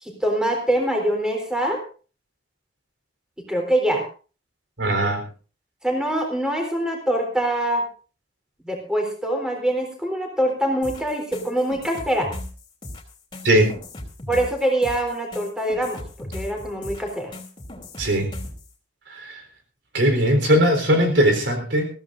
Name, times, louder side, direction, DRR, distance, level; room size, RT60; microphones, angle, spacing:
voice 1, 0.0-1.8 3.5-4.0 5.8-7.8 8.6-12.3 14.3-17.3, right 1 dB, 5° right, 2 dB, 3.6 m, -24 dB
voice 2, 4.8-5.2 13.4-13.7 18.0-18.3 19.1-19.4 19.9-21.9, equal, 75° right, 5 dB, 3.9 m, -19 dB
sound 1, 10.8-18.7, left 1 dB, 25° left, 2.8 m, -37 dB
21.5 x 15.0 x 2.6 m, 0.38 s
head